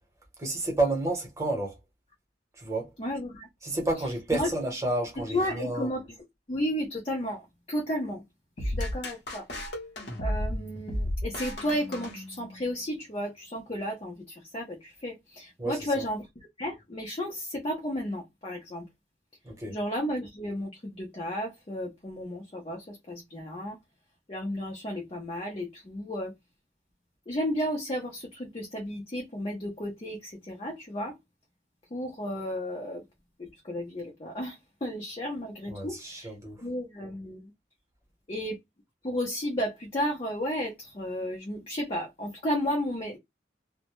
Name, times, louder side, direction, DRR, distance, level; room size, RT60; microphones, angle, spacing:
voice 1, 0.4-1.8 2.6-2.9 3.6-5.9 15.6-16.0 19.4-19.8 35.7-36.6, right 2 dB, 15° right, 0.9 m, -30 dB
voice 2, 3.0-3.5 4.3-4.5 5.3-6.1 6.5-8.2 8.6-9.5 10.2-16.3 16.6-18.9 19.7-23.8 24.3-26.3 27.3-31.2 31.9-33.0 33.4-36.3 36.6-37.5 38.3-38.6 39.0-43.2, equal, 30° left, 0.6 m, -33 dB
sound 1, 8.6-12.7, left 1 dB, 65° left, 0.9 m, -33 dB
2.2 x 2.1 x 2.9 m
head